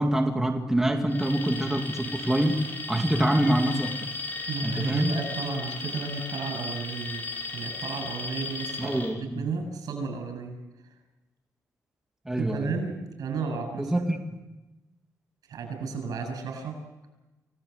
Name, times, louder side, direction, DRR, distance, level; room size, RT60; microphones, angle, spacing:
voice 1, 0.0-3.9 4.6-5.2 8.8-9.4 12.3-12.7 13.8-14.2, right 1 dB, 5° right, 3 dB, 2.3 m, -25 dB
Alarm, 1.1-9.1, left 3 dB, 30° left, 6.5 m, -36 dB
voice 2, 4.5-7.2 7.5-9.0 9.4-10.6 10.8-10.9 12.4-14.0 15.5-16.8, right 4 dB, 85° right, 6 dB, 7.5 m, -33 dB
29.5 x 18.5 x 8.1 m, 1.0 s
wide cardioid pair, 155°, 6 cm